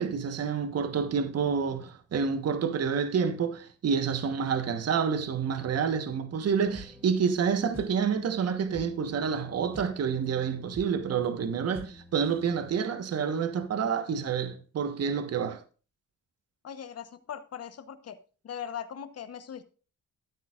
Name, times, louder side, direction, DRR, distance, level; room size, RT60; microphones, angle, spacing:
voice 1, 0.0-15.6, right 6 dB, 55° right, 1.4 m, -28 dB
sound 1, 6.6-12.8, left 1 dB, 10° right, 3.8 m, -48 dB
voice 2, 16.6-18.2 18.4-19.6, left 8 dB, 55° left, 1.2 m, -40 dB
13.0 x 9.3 x 2.5 m
cardioid pair, 90°, 30 cm